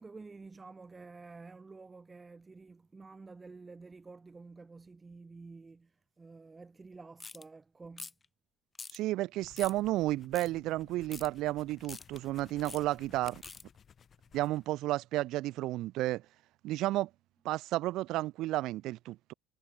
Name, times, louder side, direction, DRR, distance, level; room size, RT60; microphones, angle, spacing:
voice 1, 0.0-8.1, right 3 dB, 20° right, 5.1 m, -50 dB
sound 1, 7.2-7.4 8.0-8.2 8.7-9.0 9.6-9.8 10.3-10.5 11.1-11.3 11.8-12.0 12.6-12.8 13.4-13.6, left 4 dB, 20° left, 0.9 m, -45 dB
voice 2, 8.9-13.4 14.3-16.2 16.6-17.1 17.4-19.3, right 16 dB, 60° right, 0.4 m, -32 dB
sound 2, 9.3-14.7, left 7 dB, 35° left, 1.6 m, -57 dB
supercardioid pair, 100°, 0 cm